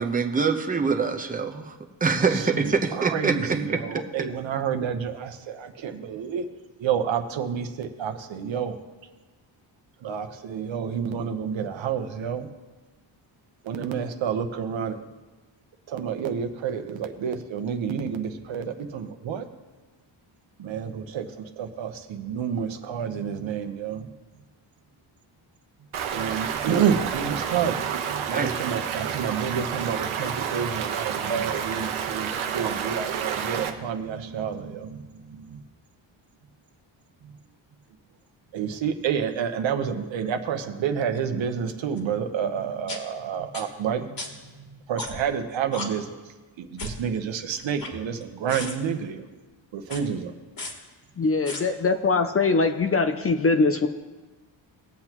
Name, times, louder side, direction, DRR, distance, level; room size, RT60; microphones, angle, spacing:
voice 1, 0.0-1.8 2.0-3.8 28.3-28.5, right 4 dB, 15° right, 4 dB, 0.8 m, -24 dB
voice 2, 2.2-6.4 6.8-8.8 10.0-12.5 13.6-15.0 15.9-19.5 20.6-24.1 26.1-35.6 37.2-37.3 38.5-44.2 44.6-46.2 46.6-49.3 49.7-50.3, right 7 dB, 70° right, 7 dB, 1.0 m, -29 dB
Stream, 25.9-33.7, right 8 dB, 90° right, 1.1 m, -30 dB
sound 1, 42.0-42.1 42.9-43.0 43.5-43.6 44.2-44.3 45.0-45.3 45.7-45.9 46.8-47.0 47.6-48.2 48.5-48.7 49.8-50.0 50.6-50.7 51.5-51.6, left 2 dB, 45° left, 2.0 m, -34 dB
voice 3, 51.2-53.9, left 4 dB, 30° left, 8 dB, 0.5 m, -22 dB
19.5 x 7.9 x 3.0 m, 1.2 s
wide cardioid pair, 135°, 48 cm